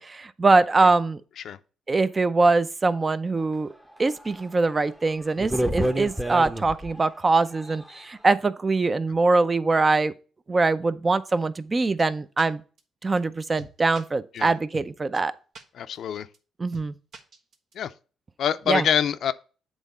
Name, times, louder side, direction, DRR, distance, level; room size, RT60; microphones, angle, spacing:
voice 1, 0.0-1.2 1.9-3.7 4.0-10.1 10.5-12.6 13.0-15.3 16.6-16.9 18.7-18.8, right 3 dB, 25° right, 0.6 m, -23 dB
sound 1, 4.2-4.3 4.8-4.9 5.4-7.0 7.5-8.0, right 1 dB, 10° right, 0.9 m, -28 dB
sound 2, 12.0-12.1 12.4-12.5 12.8-12.9 13.2-13.3 13.6-14.0 14.4-14.5 14.7-14.9 15.1-15.2 15.5-15.6 15.9-16.0 16.3-16.4 16.7-16.9 17.1-17.7, right 4 dB, 65° right, 1.3 m, -44 dB
voice 2, 15.7-16.3 17.8-17.9 18.4-19.3, left 9 dB, 65° left, 0.5 m, -25 dB
8.1 x 3.7 x 5.4 m
cardioid pair, 90°, 0 cm